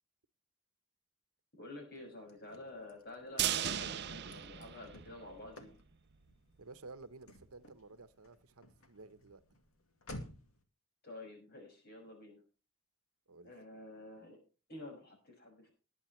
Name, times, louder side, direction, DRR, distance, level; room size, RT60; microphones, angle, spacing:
voice 1, 1.5-5.7 11.0-12.4 13.4-14.4 14.7-15.7, left 2 dB, 45° left, 5.9 m, -50 dB
Car / Slam, 2.0-10.6, left 1 dB, 75° left, 2.3 m, -55 dB
sound 1, 3.4-5.5 5.9-6.0 6.3-6.4, right 10 dB, 50° right, 0.6 m, -36 dB
voice 2, 6.6-9.4 13.3-13.5, right 3 dB, 80° right, 1.0 m, -53 dB
21.0 x 8.7 x 3.2 m
head